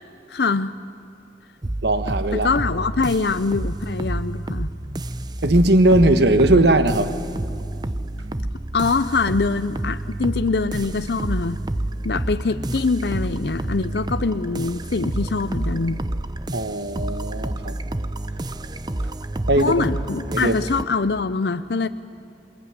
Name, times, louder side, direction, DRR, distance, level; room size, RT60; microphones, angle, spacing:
voice 1, 0.3-0.7 2.4-4.7 8.7-11.6 12.0-16.1 19.6-21.9, left 4 dB, 60° left, 0.6 m, -23 dB
sound 1, 1.6-20.8, right 1 dB, 25° right, 0.6 m, -29 dB
voice 2, 1.8-2.5 5.4-7.2 16.5-17.8 19.5-19.8 20.3-20.6, right 1 dB, 65° right, 1.4 m, -18 dB
27.0 x 22.0 x 9.5 m
head